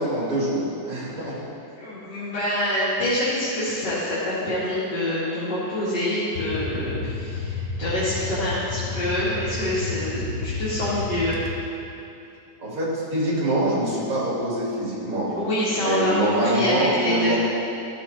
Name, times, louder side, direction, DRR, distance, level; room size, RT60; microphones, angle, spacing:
voice 1, 0.0-1.4 12.6-15.3 15.8-17.4, right 1 dB, 50° right, -7 dB, 2.9 m, -24 dB
voice 2, 1.8-11.4 15.3-17.3, left 1 dB, 85° left, -11 dB, 2.6 m, -26 dB
sound 1, 6.4-11.9, left 4 dB, 50° left, 1.0 m, -31 dB
13.0 x 6.5 x 4.2 m, 2.7 s
omnidirectional pair, 1.8 m